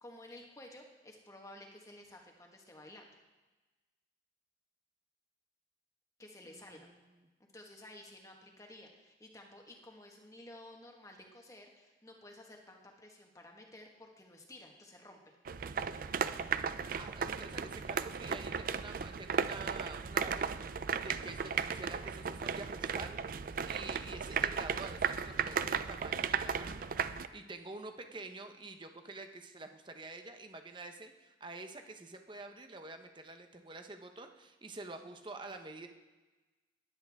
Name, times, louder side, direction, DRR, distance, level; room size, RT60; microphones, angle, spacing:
voice 1, 0.0-3.1 6.2-6.9 7.5-15.3, left 1 dB, 20° left, 1 dB, 1.4 m, -53 dB
sound 1, 15.5-27.3, right 6 dB, 50° right, 0.4 m, -35 dB
voice 2, 16.9-23.2 23.6-35.9, right 3 dB, 25° right, 6 dB, 0.8 m, -48 dB
14.5 x 10.5 x 3.6 m, 1.2 s
head